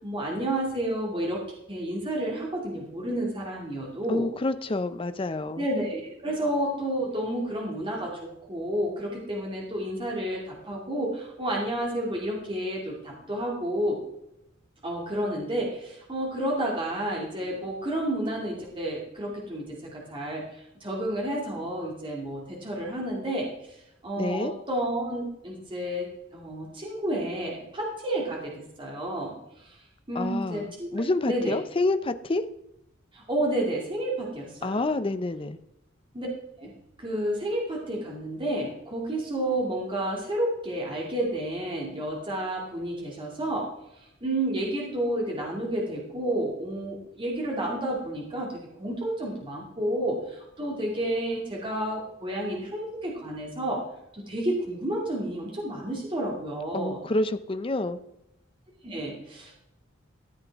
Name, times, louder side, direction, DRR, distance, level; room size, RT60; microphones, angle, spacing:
voice 1, 0.0-1.4 1.7-4.3 5.6-14.0 14.8-23.8 24.0-29.8 30.1-30.9 31.3-31.5 33.1-34.9 36.1-36.3 36.6-36.7 37.0-43.7 44.2-53.8 54.1-57.0 58.8-59.5, right 1 dB, 25° right, -2 dB, 2.4 m, -30 dB
voice 2, 4.1-5.6 24.2-24.5 30.2-32.4 34.6-35.6 56.7-58.0, left 2 dB, 25° left, 10 dB, 0.5 m, -28 dB
14.0 x 8.0 x 3.5 m, 0.81 s
head